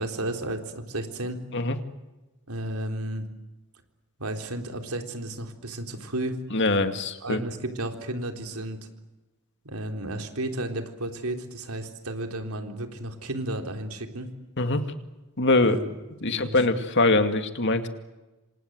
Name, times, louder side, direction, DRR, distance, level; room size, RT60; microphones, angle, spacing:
voice 1, 0.0-1.4 2.5-3.3 4.2-6.4 7.2-8.8 9.6-14.3 15.6-15.9 16.3-16.6, right 1 dB, 85° right, 5 dB, 3.8 m, -33 dB
voice 2, 6.5-7.4 14.6-14.8 15.4-15.8 16.2-17.9, left 2 dB, 55° left, 8 dB, 2.3 m, -23 dB
28.0 x 26.5 x 8.0 m, 1.1 s
head